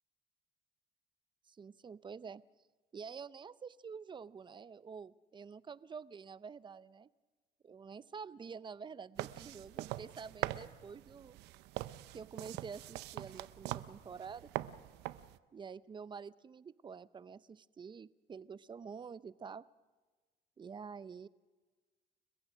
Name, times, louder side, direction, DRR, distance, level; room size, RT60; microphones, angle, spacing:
voice 1, 1.5-2.4 2.9-7.1 7.6-11.4 12.1-14.5 15.5-19.7 20.6-21.3, right 6 dB, 25° right, 17 dB, 0.6 m, -48 dB
sound 1, 9.2-15.4, right 16 dB, 90° right, 0.7 m, -43 dB
30.0 x 15.5 x 6.2 m, 1.4 s
cardioid pair, 110°, 17 cm